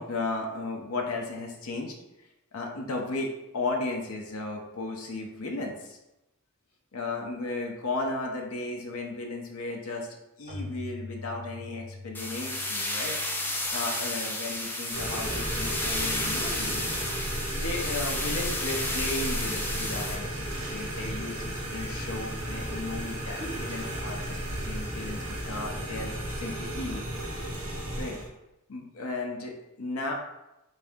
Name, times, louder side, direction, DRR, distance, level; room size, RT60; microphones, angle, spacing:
voice 1, 0.0-1.9 2.5-6.0 6.9-10.1 10.4-13.2 13.7-16.8 17.5-24.4 24.6-27.1 28.0-28.2 28.7-30.1, left 2 dB, 75° left, 0 dB, 0.6 m, -35 dB
Keyboard (musical), 10.5-15.0, left 2 dB, 25° right, 0.9 m, -44 dB
sound 1, 12.1-20.2, left 1 dB, 10° left, 0.4 m, -32 dB
sound 2, 14.9-28.3, right 1 dB, 75° right, 1.1 m, -34 dB
3.7 x 2.6 x 3.5 m, 0.92 s
head